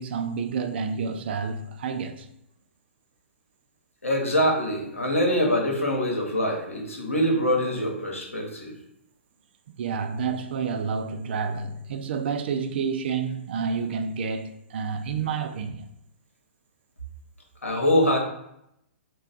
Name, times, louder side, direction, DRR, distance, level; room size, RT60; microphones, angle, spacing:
voice 1, 0.0-2.3 9.8-15.9, right 5 dB, 50° right, 0.3 m, -29 dB
voice 2, 4.0-8.7 17.6-18.2, equal, 85° left, 1.0 m, -24 dB
3.1 x 2.2 x 3.9 m
figure-of-eight pair, 120°, 7 cm